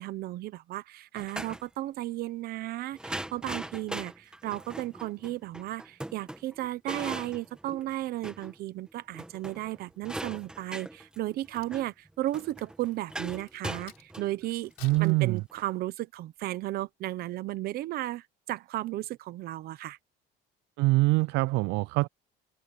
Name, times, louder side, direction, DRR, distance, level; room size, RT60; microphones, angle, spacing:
voice 1, 0.0-14.7 15.0-20.0, right 15 dB, 55° right, 0.9 m, -34 dB
sound 1, 1.2-1.6 2.9-8.6 8.9-9.0 9.1-15.6, right 1 dB, 5° right, 1.6 m, -40 dB
Crack, 11.2-14.3 14.7-15.9 16.4-16.6, left 19 dB, 85° left, 4.3 m, -55 dB
voice 2, 14.8-15.4 20.8-22.1, right 21 dB, 75° right, 0.4 m, -24 dB
cardioid pair, 170°, 19 cm